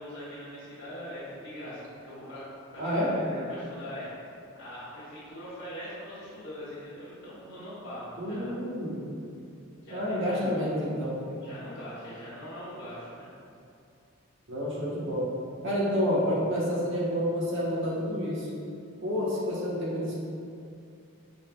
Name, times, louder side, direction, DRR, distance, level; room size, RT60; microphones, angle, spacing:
voice 1, 0.0-2.5 2.7-8.5 9.7-10.4 11.3-13.3, equal, 55° left, -12 dB, 1.0 m, -42 dB
voice 2, 2.8-3.1 8.2-8.9 9.9-11.2 14.5-15.3 15.6-18.5 19.0-20.2, equal, 60° right, -7 dB, 1.2 m, -29 dB
5.5 x 4.0 x 2.3 m, 2.5 s
head